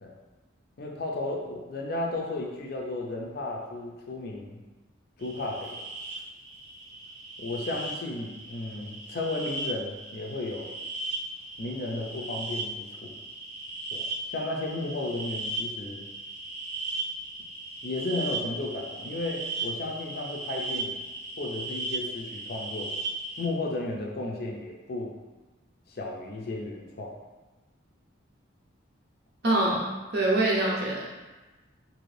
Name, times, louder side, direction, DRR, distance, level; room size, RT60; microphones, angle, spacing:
voice 1, 0.8-4.6 5.2-5.8 7.4-10.7 11.6-13.1 13.9-16.1 17.8-21.0 21.4-22.9 23.4-25.1 25.9-27.1, left 2 dB, 50° left, 0 dB, 0.5 m, -34 dB
sound 1, 5.2-23.5, right 2 dB, 90° right, 0.8 m, -37 dB
voice 2, 29.4-31.1, right 1 dB, 55° right, -4 dB, 0.5 m, -25 dB
2.7 x 2.6 x 3.2 m, 1.2 s
head